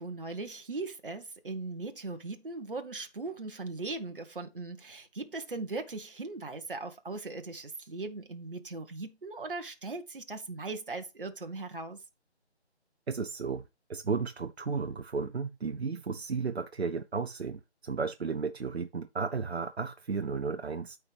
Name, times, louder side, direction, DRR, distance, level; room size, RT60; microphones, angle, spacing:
voice 1, 0.0-12.0, right 3 dB, 50° right, 1.4 m, -39 dB
voice 2, 13.1-13.6 13.9-21.0, right 5 dB, 65° right, 0.8 m, -34 dB
13.0 x 4.7 x 3.4 m
figure-of-eight pair, 175°, 34 cm